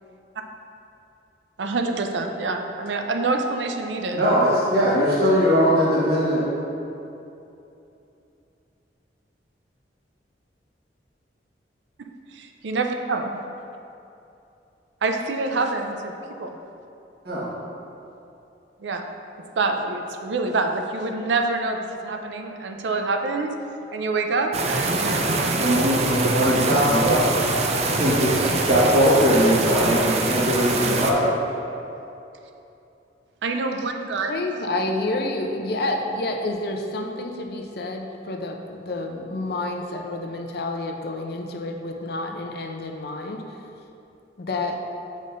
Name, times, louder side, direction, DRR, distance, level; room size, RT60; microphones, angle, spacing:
voice 1, 1.6-4.4 12.3-13.3 15.0-16.1 16.4-16.6 18.8-19.0 19.6-23.5 23.9-25.7 26.3-26.5 33.4-34.3, right 3 dB, 90° right, 4 dB, 0.5 m, -26 dB
voice 2, 4.1-6.4 17.2-17.4 25.6-27.2 27.9-31.3, equal, 60° right, -8 dB, 1.4 m, -20 dB
sound 1, 24.5-31.1, right 2 dB, 35° right, 0.4 m, -24 dB
voice 3, 34.3-43.4 44.4-44.8, left 2 dB, 60° left, 3 dB, 0.6 m, -29 dB
8.4 x 5.1 x 2.6 m, 2.8 s
head